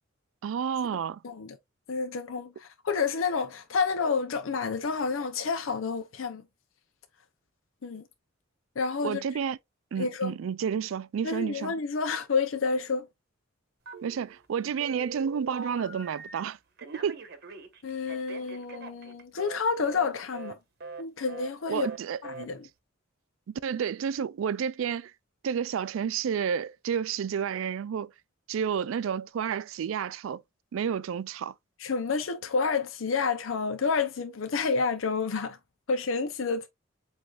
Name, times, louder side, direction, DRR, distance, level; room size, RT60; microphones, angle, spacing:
voice 1, 0.4-1.2 9.0-9.6 9.9-11.7 14.0-16.6 16.9-17.2 21.7-22.2 23.5-25.1 25.4-28.1 28.5-30.4 30.7-31.5, right 7 dB, 75° right, 0.3 m, -30 dB
voice 2, 1.2-1.6 1.9-6.4 7.8-8.0 8.8-9.2 10.0-10.3 11.2-13.1 17.8-20.6 21.0-21.9 22.2-22.7 31.8-35.6 35.9-36.7, left 5 dB, 75° left, 0.6 m, -29 dB
Telephone, 13.9-14.5 14.8-16.4 16.8-19.6 19.9-20.1 20.3-20.5 20.8-21.0 21.3-21.5 21.8-22.0 22.2-22.5, right 4 dB, 55° right, 1.0 m, -42 dB
7.7 x 2.7 x 2.3 m
head